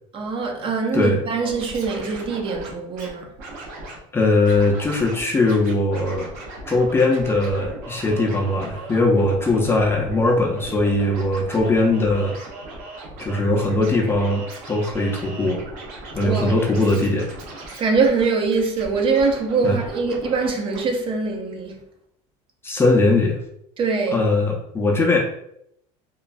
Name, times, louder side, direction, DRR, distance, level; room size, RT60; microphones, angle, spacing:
voice 1, 0.1-3.3 16.2-16.6 17.8-21.8 23.8-24.2, right 4 dB, 35° right, 0.6 m, -23 dB
Scratching (performance technique), 1.4-3.1 3.4-4.0 4.4-5.2 5.5-20.5 20.7-20.8, right 2 dB, 65° right, 1.0 m, -38 dB
voice 2, 4.1-6.3 6.7-12.3 13.2-15.6 16.1-17.3 19.6-19.8 22.6-23.4 24.1-25.2, left 2 dB, 15° left, 0.5 m, -20 dB
3.0 x 2.2 x 2.5 m
cardioid pair, 125°, 15 cm